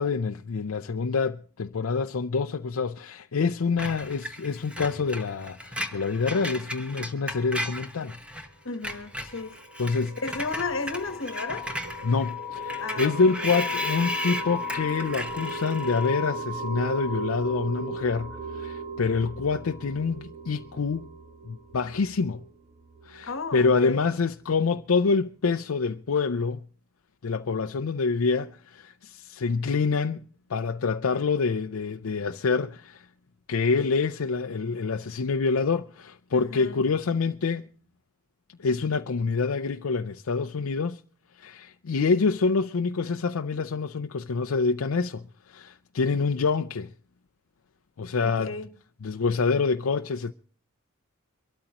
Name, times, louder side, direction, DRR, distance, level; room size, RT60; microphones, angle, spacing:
voice 1, 0.0-8.1 9.8-10.2 12.0-21.1 21.4-22.4 23.0-26.6 27.2-30.2 30.5-33.1 33.5-37.7 38.6-41.0 41.4-46.9 48.0-48.6 49.0-50.3, left 4 dB, 85° left, 0.5 m, -26 dB
Screech, 3.8-8.5 8.7-16.2, equal, 5° right, 1.2 m, -36 dB
voice 2, 8.6-9.6 10.2-11.7 12.8-13.3 23.2-24.0 36.3-36.8 48.2-48.7, left 3 dB, 65° left, 1.2 m, -33 dB
sound 1, 9.3-23.7, left 1 dB, 45° right, 2.0 m, -36 dB
24.0 x 13.0 x 3.0 m
head